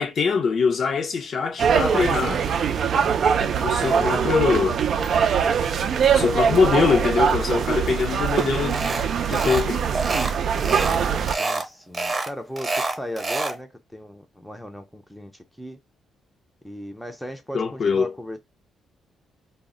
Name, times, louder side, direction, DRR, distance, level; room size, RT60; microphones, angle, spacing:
voice 1, 0.0-2.4 3.6-4.8 6.1-8.9 9.3-9.8 17.5-18.1, left 5 dB, 55° left, 0.5 m, -23 dB
sound 1, 1.6-11.3, right 7 dB, 60° right, 0.3 m, -22 dB
sound 2, 8.7-9.0 9.3-9.7 9.9-11.0 11.3-11.7 11.9-13.6, right 3 dB, 25° right, 0.8 m, -27 dB
voice 2, 11.2-15.8 16.6-18.4, equal, ahead, 0.5 m, -37 dB
2.0 x 2.0 x 3.6 m
cardioid pair, 110°, 0 cm